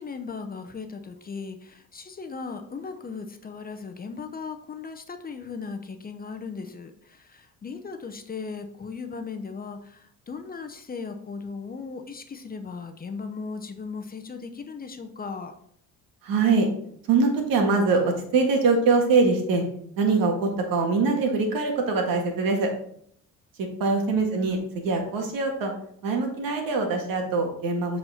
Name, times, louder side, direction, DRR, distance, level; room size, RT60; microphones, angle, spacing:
voice 1, 0.0-15.5 24.1-24.5, left 5 dB, 25° left, 6 dB, 0.7 m, -37 dB
voice 2, 16.2-16.7 17.1-19.6 20.0-22.7 23.8-24.6 24.8-25.7 26.0-28.0, right 4 dB, 70° right, 3 dB, 1.9 m, -23 dB
7.7 x 4.3 x 4.3 m, 0.65 s
cardioid pair, 115°, 35 cm